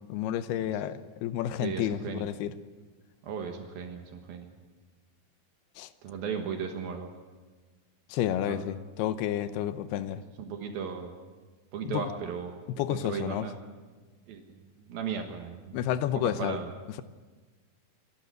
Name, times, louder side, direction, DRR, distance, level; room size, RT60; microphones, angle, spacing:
voice 1, 0.1-2.5 5.8-5.9 8.1-10.2 11.8-12.1 12.8-13.5 15.7-16.6, left 11 dB, 85° left, 13 dB, 2.8 m, -30 dB
voice 2, 1.6-2.3 3.2-4.5 6.0-7.1 8.5-8.6 10.4-11.2 11.7-12.6 12.9-13.6 14.3-15.9 16.2-16.7, right 6 dB, 75° right, 4 dB, 3.1 m, -36 dB
26.5 x 12.5 x 7.9 m, 1.4 s
omnidirectional pair, 4.5 m